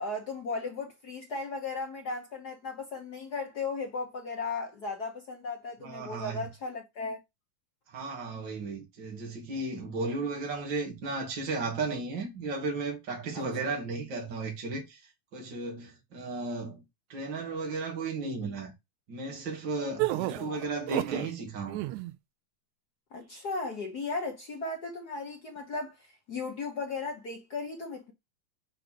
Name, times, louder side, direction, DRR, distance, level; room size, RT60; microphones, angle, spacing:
voice 1, 0.0-7.2 13.3-13.4 20.1-20.6 23.1-28.1, left 3 dB, 85° left, 0.8 m, -36 dB
voice 2, 5.8-6.4 7.9-15.0 15.3-16.8 17.1-18.7 19.1-21.8, right 3 dB, 35° right, 2.9 m, -34 dB
sound 1, 20.0-21.3 21.7-22.1, right 17 dB, 80° right, 1.8 m, -30 dB
6.5 x 5.1 x 6.3 m
omnidirectional pair, 3.9 m